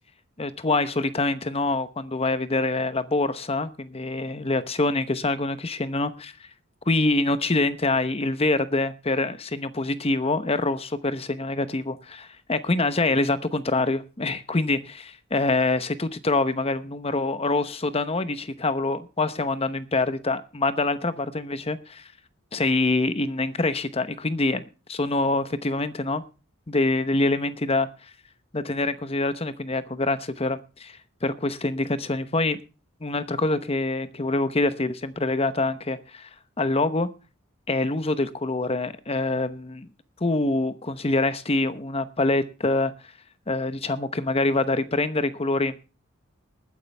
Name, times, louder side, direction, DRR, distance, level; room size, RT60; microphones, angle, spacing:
voice 1, 0.4-6.3 6.9-22.1 22.5-24.6 24.9-26.2 26.7-27.9 28.5-32.6 33.0-36.3 36.6-37.1 37.7-39.9 40.2-42.9 43.5-45.8, left 2 dB, 30° left, 0.9 m, -25 dB
20.5 x 9.7 x 3.4 m
head